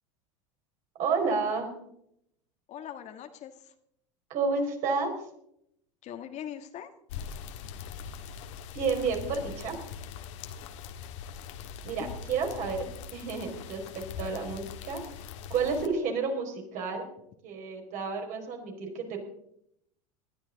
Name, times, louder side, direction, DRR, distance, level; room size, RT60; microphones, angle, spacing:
voice 1, 1.0-1.7 4.3-5.1 8.7-9.7 11.8-12.9 13.1-15.0 15.5-17.1 17.4-19.2, right 4 dB, 50° right, 2 dB, 4.7 m, -30 dB
voice 2, 2.7-3.7 6.0-6.9 12.0-12.1, left 10 dB, 45° left, 7 dB, 1.6 m, -41 dB
sound 1, 7.1-15.9, left 7 dB, 65° left, 1.7 m, -42 dB
20.0 x 12.0 x 4.0 m, 0.73 s
hypercardioid pair, 90°, 17 cm